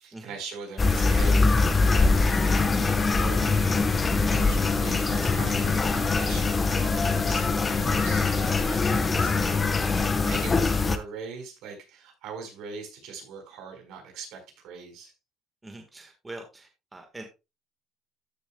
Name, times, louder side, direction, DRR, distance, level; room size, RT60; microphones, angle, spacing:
voice 1, 0.0-9.7 10.2-15.1, right 5 dB, 65° right, 3 dB, 4.4 m, -41 dB
sound 1, 0.8-11.0, left 3 dB, 20° left, 1.0 m, -23 dB
sound 2, 2.1-9.5, left 5 dB, 80° left, 2.8 m, -41 dB
voice 2, 15.6-17.2, right 2 dB, 15° right, 4 dB, 1.4 m, -43 dB
13.5 x 7.0 x 2.2 m, 0.26 s
cardioid pair, 135°, 0 cm